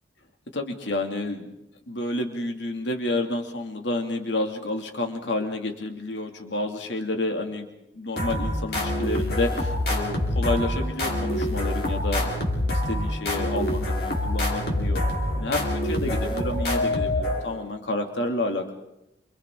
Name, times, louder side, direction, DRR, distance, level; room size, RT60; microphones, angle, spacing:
voice 1, 0.5-1.4 1.9-7.7 7.9-12.3 12.7-15.0 15.3-18.7, left 2 dB, 80° left, 3 dB, 2.6 m, -29 dB
sound 1, 8.2-17.7, left 1 dB, 55° left, 4.0 m, -26 dB
28.5 x 28.5 x 3.9 m, 0.85 s
head